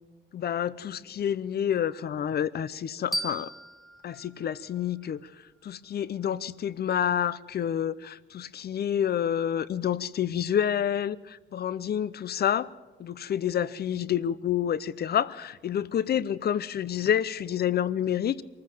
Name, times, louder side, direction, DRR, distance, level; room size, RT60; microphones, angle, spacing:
voice 1, 0.3-3.5 4.0-5.2 5.6-12.7 13.0-18.4, left 9 dB, 55° left, 0.7 m, -28 dB
sound 1, 3.1-5.9, equal, ahead, 1.8 m, -38 dB
23.5 x 14.5 x 7.8 m
cardioid pair, 90°, 20 cm